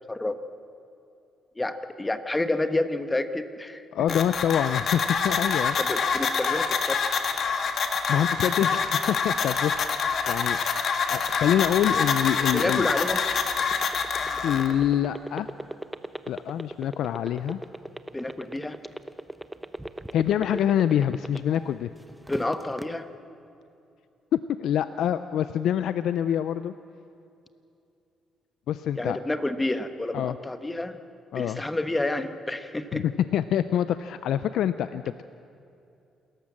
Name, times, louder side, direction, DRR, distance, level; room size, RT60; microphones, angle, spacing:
voice 1, 1.6-3.8 4.1-4.2 5.8-7.1 12.5-13.2 18.1-18.8 22.3-23.0 29.0-31.0 31.3-33.0, left 2 dB, 15° left, 10 dB, 1.2 m, -29 dB
voice 2, 3.9-5.8 8.1-12.9 14.4-15.5 16.3-17.6 20.1-21.9 24.3-26.7 28.7-29.2 30.1-30.4 31.3-31.6 32.9-33.0 33.3-35.2, left 10 dB, 80° left, 12 dB, 0.5 m, -26 dB
sound 1, 4.1-14.7, left 5 dB, 60° left, 1.8 m, -26 dB
sound 2, 13.5-21.7 22.1-22.8, right 1 dB, 5° right, 0.9 m, -36 dB
28.0 x 14.0 x 7.4 m, 2.6 s
cardioid pair, 90°, 0 cm